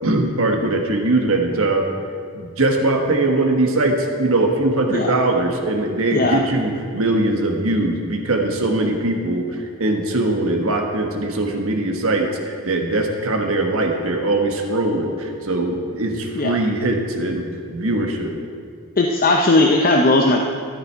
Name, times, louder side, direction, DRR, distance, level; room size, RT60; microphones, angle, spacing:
voice 1, 0.0-1.9 2.3-18.3, right 2 dB, 65° right, 3 dB, 1.4 m, -21 dB
voice 2, 19.0-20.4, left 2 dB, 40° left, 2 dB, 0.7 m, -17 dB
13.5 x 10.5 x 4.6 m, 2.1 s
head